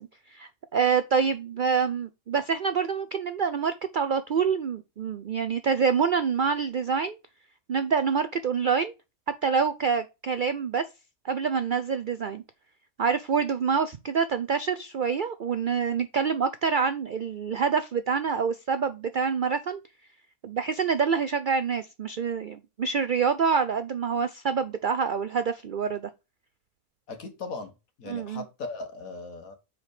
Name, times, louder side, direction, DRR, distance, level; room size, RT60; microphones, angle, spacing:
voice 1, 0.0-7.2 7.7-8.9 9.4-10.8 11.2-12.4 13.0-19.8 20.4-26.1 28.1-28.4, right 6 dB, 70° right, 0.4 m, -26 dB
voice 2, 27.1-27.7 28.0-29.6, left 3 dB, 70° left, 1.8 m, -38 dB
6.1 x 5.0 x 4.9 m
omnidirectional pair, 1.5 m